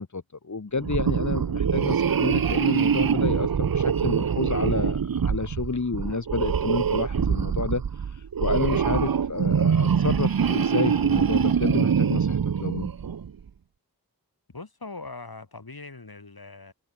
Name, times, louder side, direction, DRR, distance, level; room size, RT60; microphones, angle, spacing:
voice 1, 0.0-12.9, left 4 dB, 50° left, 1.5 m, -30 dB
sound 1, 0.8-13.3, right 7 dB, 70° right, 0.7 m, -24 dB
voice 2, 14.5-16.7, left 3 dB, 75° left, 6.7 m, -41 dB
open air
wide cardioid pair, 50°, 37 cm